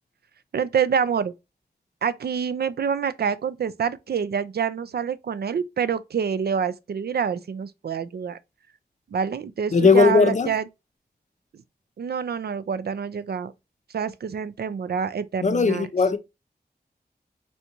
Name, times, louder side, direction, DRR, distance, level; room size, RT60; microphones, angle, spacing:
voice 1, 0.5-1.3 2.0-8.4 9.1-10.7 12.0-13.5 13.9-15.9, right 7 dB, 70° right, 0.4 m, -26 dB
voice 2, 9.7-10.5 15.4-16.2, left 4 dB, 45° left, 0.5 m, -18 dB
3.4 x 2.6 x 2.8 m
cardioid pair, 50°, 17 cm